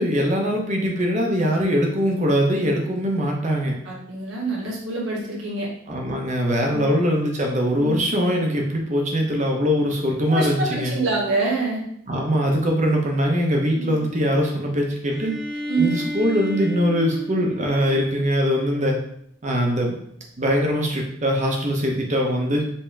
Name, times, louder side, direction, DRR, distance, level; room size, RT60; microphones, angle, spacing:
voice 1, 0.0-3.7 5.9-10.9 12.1-15.3 15.8-19.0 19.4-20.0 20.4-22.6, equal, 35° right, 1 dB, 0.8 m, -22 dB
voice 2, 3.9-5.7 6.7-6.9 7.8-8.0 10.3-11.8 13.8-13.9 15.7-15.9, right 3 dB, 65° right, -4 dB, 1.3 m, -25 dB
Bowed string instrument, 15.1-18.8, left 1 dB, 5° right, 0.5 m, -33 dB
5.3 x 2.8 x 3.5 m, 0.71 s
head